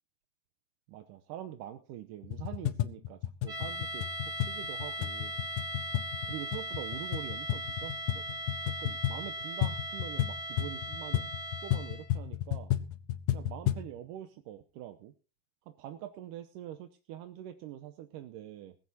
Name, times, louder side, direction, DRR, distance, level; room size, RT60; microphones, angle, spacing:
voice 1, 0.9-5.3 6.2-8.2 8.7-11.3 11.6-12.7 13.3-15.1 15.7-18.8, right 12 dB, 75° right, 7 dB, 2.2 m, -44 dB
sound 1, 2.2-13.9, left 12 dB, 75° left, 2.1 m, -34 dB
sound 2, 3.5-12.2, equal, 20° right, 2.5 m, -39 dB
19.5 x 15.0 x 2.8 m, 0.35 s
omnidirectional pair, 4.3 m